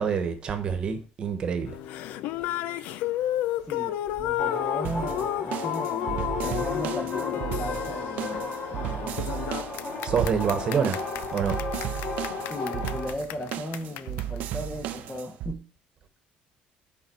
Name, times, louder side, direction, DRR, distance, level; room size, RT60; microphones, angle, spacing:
voice 1, 0.0-1.8 10.0-11.6, right 6 dB, 30° right, 1.2 m, -27 dB
sound 1, 1.7-15.2, left 13 dB, 75° left, 0.5 m, -33 dB
voice 2, 3.6-9.2 12.5-15.7, equal, 10° left, 0.8 m, -37 dB
sound 2, 4.4-13.1, left 3 dB, 60° left, 3.5 m, -34 dB
sound 3, 4.8-15.5, right 13 dB, 60° right, 0.6 m, -35 dB
9.8 x 5.3 x 4.6 m
cardioid pair, 170°, 3 cm